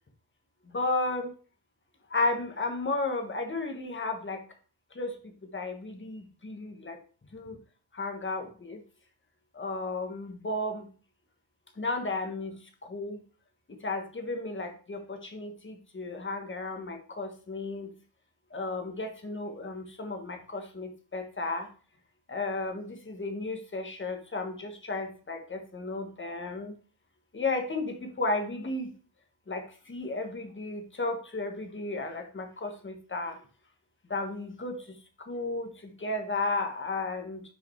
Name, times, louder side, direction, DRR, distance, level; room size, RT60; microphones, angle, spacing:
voice 1, 0.6-1.3 2.1-4.4 4.9-7.0 7.3-7.6 7.9-8.8 9.5-10.9 11.8-13.2 13.7-18.0 18.5-21.7 22.3-26.7 27.3-28.9 29.5-33.4 34.1-37.4, left 2 dB, 25° left, 4 dB, 1.3 m, -34 dB
6.1 x 5.0 x 4.4 m, 0.40 s
wide cardioid pair, 120°, 47 cm